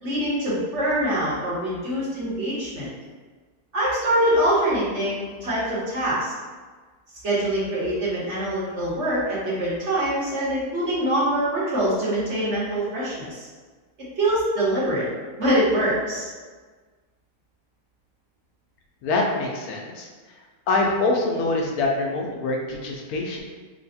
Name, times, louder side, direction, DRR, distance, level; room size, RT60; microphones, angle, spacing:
voice 1, 0.0-2.9 3.7-6.3 7.2-13.5 14.2-15.1 15.4-16.3, right 1 dB, 50° right, -8 dB, 1.3 m, -24 dB
voice 2, 19.0-20.1 20.7-23.4, left 2 dB, 75° left, 0 dB, 1.0 m, -24 dB
3.3 x 2.2 x 4.1 m, 1.4 s
omnidirectional pair, 1.6 m